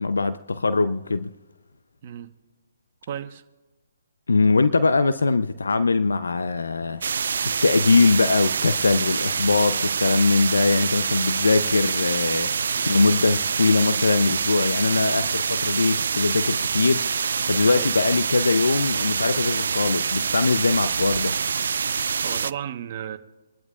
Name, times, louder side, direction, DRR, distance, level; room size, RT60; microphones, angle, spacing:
voice 1, 0.0-1.3 4.3-7.0 7.6-21.4, left 3 dB, 80° left, 0.7 m, -21 dB
voice 2, 3.1-3.4 12.7-13.0 15.0-15.3 17.6-17.9 22.2-23.2, right 9 dB, 40° right, 1.2 m, -34 dB
sound 1, 7.0-22.5, right 6 dB, 65° right, 0.4 m, -26 dB
27.0 x 12.5 x 2.5 m
hypercardioid pair, 145°, 0 cm